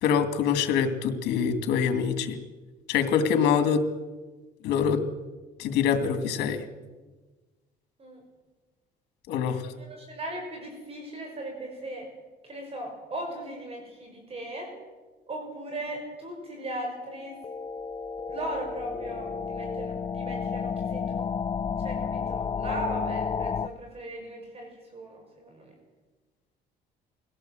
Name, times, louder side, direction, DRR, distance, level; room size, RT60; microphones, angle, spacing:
voice 1, 0.0-2.4 2.9-3.8 4.6-5.0 5.6-6.6 9.3-9.6, left 7 dB, 85° left, 8 dB, 2.4 m, -24 dB
voice 2, 9.5-12.1 12.4-14.7 15.3-17.4 18.3-21.3 21.8-25.7, right 1 dB, 35° right, 2 dB, 6.0 m, -38 dB
sound 1, 17.0-23.7, left 6 dB, 30° left, 0.7 m, -32 dB
23.0 x 17.0 x 7.9 m, 1.3 s
cardioid pair, 110°, 17 cm